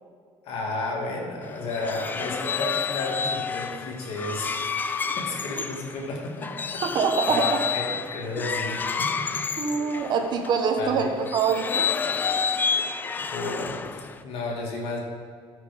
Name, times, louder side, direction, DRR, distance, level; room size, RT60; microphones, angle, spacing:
voice 1, 0.4-7.0 7.3-9.3 9.9-10.1 10.8-11.1 13.2-15.0, left 2 dB, 75° left, -1 dB, 2.2 m, -33 dB
sound 1, 1.5-10.6 11.2-14.2, left 5 dB, 20° left, 0.4 m, -29 dB
voice 2, 6.8-7.6 9.6-11.9, right 5 dB, 50° right, 5 dB, 1.1 m, -25 dB
13.0 x 5.9 x 5.2 m, 2.1 s
cardioid pair, 165°, 10 cm